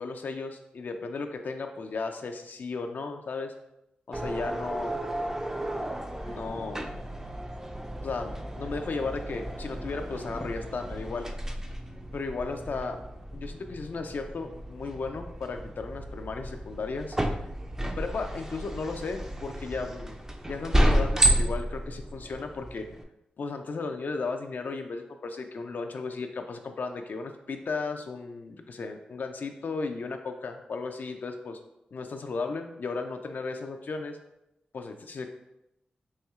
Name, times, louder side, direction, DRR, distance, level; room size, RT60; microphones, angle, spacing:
voice 1, 0.0-3.5 4.1-5.0 6.3-7.0 8.0-11.3 12.1-13.0 13.3-17.2 18.0-20.2 20.5-22.9 23.4-31.6 31.9-34.2 34.7-35.3, left 4 dB, 65° left, 5 dB, 0.3 m, -35 dB
sound 1, 4.1-23.0, right 1 dB, 15° right, 0.4 m, -32 dB
4.2 x 2.6 x 2.3 m, 0.86 s
cardioid pair, 40°, 3 cm